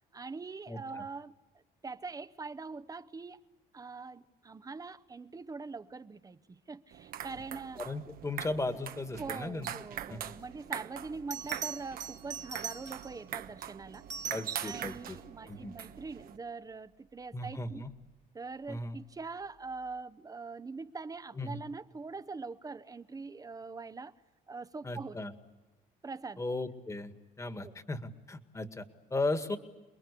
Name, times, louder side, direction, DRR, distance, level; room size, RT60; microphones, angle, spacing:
voice 1, 0.1-1.3 1.8-3.4 3.7-7.8 9.2-14.0 14.6-17.8 18.3-24.1 24.5-25.2 26.0-26.4 27.6-27.7, right 4 dB, 20° right, 0.9 m, -43 dB
sound 1, 6.9-16.4, right 10 dB, 60° right, 1.2 m, -43 dB
voice 2, 7.8-9.7 10.1-10.2 14.3-15.2 15.4-15.7 17.3-17.9 18.7-19.0 21.3-21.6 24.8-25.3 26.4-27.1 27.4-29.6, left 2 dB, 15° left, 1.9 m, -36 dB
Bell, 10.7-10.8 11.3-13.2 13.9-15.0 17.7-17.9, right 7 dB, 45° right, 1.8 m, -42 dB
28.0 x 21.5 x 8.4 m
cardioid pair, 110°, 17 cm